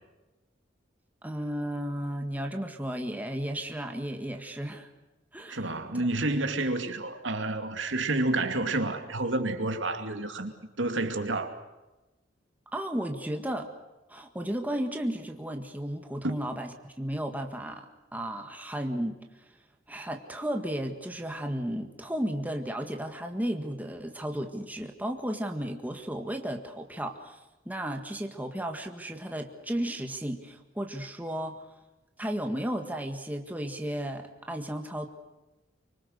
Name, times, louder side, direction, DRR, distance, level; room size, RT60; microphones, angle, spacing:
voice 1, 1.2-4.9 5.3-6.1 12.7-13.7 14.1-17.9 18.1-19.2 19.9-27.4 27.7-31.7 32.2-35.1, right 1 dB, 10° right, 1.7 m, -34 dB
voice 2, 5.5-11.5 16.2-16.4, right 2 dB, 75° right, 2.5 m, -29 dB
25.0 x 24.5 x 6.6 m
head